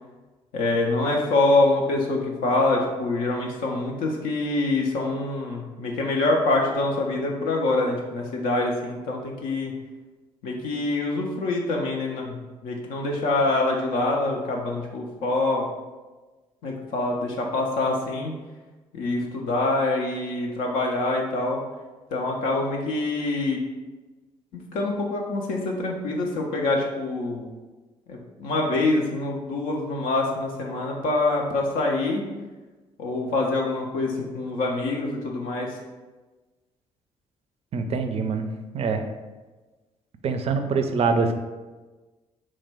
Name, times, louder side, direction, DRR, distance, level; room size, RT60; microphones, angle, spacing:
voice 1, 0.5-9.7 10.4-15.6 16.6-18.3 18.9-21.6 22.1-23.6 24.5-27.5 28.1-32.2 33.0-35.8, left 2 dB, 60° left, 0 dB, 0.4 m, -25 dB
voice 2, 37.7-38.5 38.7-39.0 40.2-41.3, right 4 dB, 40° right, 7 dB, 0.4 m, -24 dB
3.1 x 2.1 x 3.3 m, 1.2 s
figure-of-eight pair, 45°, 16 cm